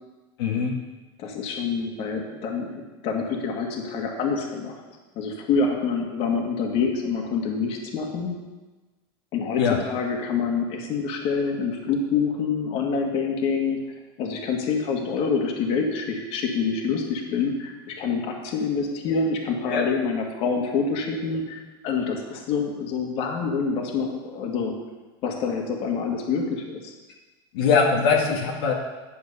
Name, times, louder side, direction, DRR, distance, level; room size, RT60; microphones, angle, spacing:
voice 1, 0.4-0.8 9.6-9.8 19.7-19.9 27.5-28.7, left 5 dB, 75° left, -1 dB, 1.8 m, -21 dB
voice 2, 1.2-4.8 5.2-8.3 9.3-13.8 14.2-24.7 25.2-26.9, left 5 dB, 50° left, 2 dB, 2.2 m, -26 dB
10.0 x 7.8 x 6.8 m, 1.2 s
supercardioid pair, 130°, 13 cm